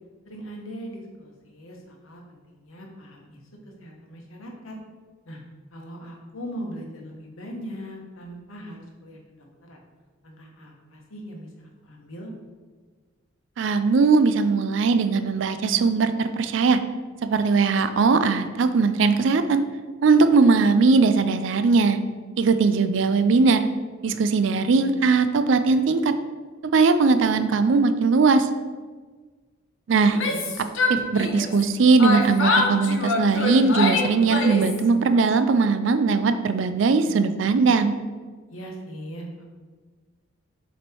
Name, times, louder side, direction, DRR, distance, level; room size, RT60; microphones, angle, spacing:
voice 1, 0.2-3.4 3.8-4.8 5.3-5.4 5.7-9.8 10.2-12.3 30.3-30.4 38.5-39.5, equal, 85° left, 0 dB, 1.2 m, -40 dB
voice 2, 13.6-16.8 17.2-19.6 20.0-22.0 22.4-23.7 24.0-26.2 26.7-28.5 29.9-30.2 30.9-38.0, right 4 dB, 65° right, 11 dB, 0.4 m, -19 dB
Yell, 30.0-31.7 32.0-34.8, left 2 dB, 65° left, 0.8 m, -25 dB
7.1 x 3.1 x 4.5 m, 1.4 s
head